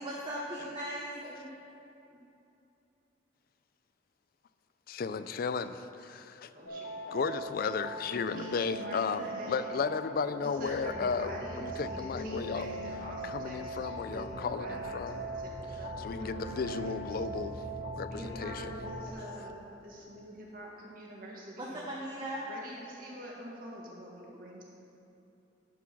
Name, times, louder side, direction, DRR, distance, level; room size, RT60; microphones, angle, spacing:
voice 1, 0.0-1.5 21.6-22.5, right 1 dB, 25° right, -5 dB, 0.8 m, -38 dB
voice 2, 4.9-6.5 7.1-12.7 13.2-15.2 16.0-17.6 18.0-18.7, left 5 dB, 55° left, 12 dB, 0.3 m, -34 dB
voice 3, 6.5-6.9 8.3-9.8 10.4-16.8 17.2-17.3 18.1-21.9 22.5-24.6, equal, 50° right, -3 dB, 1.7 m, -45 dB
sound 1, 6.7-19.1, right 1 dB, 90° left, 1.1 m, -41 dB
sound 2, 10.5-18.9, right 1 dB, 80° right, 1.3 m, -46 dB
11.0 x 4.6 x 5.9 m, 2.8 s
head